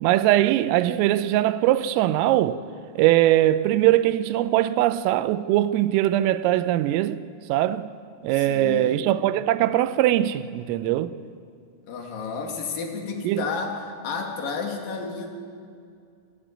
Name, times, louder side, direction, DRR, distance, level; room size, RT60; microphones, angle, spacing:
voice 1, 0.0-2.6 3.0-7.2 7.5-7.9 8.2-11.2 13.2-13.5, right 14 dB, 85° right, 3.3 m, -21 dB
voice 2, 8.3-9.0 11.9-15.3, left 5 dB, 50° left, 3.6 m, -31 dB
29.0 x 13.5 x 8.8 m
omnidirectional pair, 5.9 m